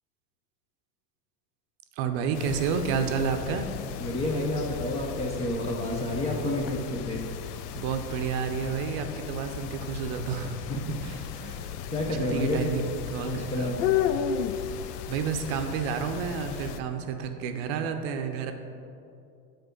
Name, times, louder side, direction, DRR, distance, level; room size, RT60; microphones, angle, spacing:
voice 1, 2.0-3.7 7.7-10.6 10.9-11.4 12.1-12.8 13.1-13.7 15.1-18.5, right 6 dB, 45° right, 6 dB, 0.6 m, -30 dB
sound 1, 2.3-16.8, left 8 dB, 70° left, 0.5 m, -34 dB
voice 2, 4.0-7.2 10.7-10.9 11.4-11.6 11.9-12.8 13.2-13.8, left 2 dB, 15° left, -2 dB, 0.4 m, -30 dB
6.7 x 3.9 x 5.2 m, 2.6 s
hypercardioid pair, 110°, 49 cm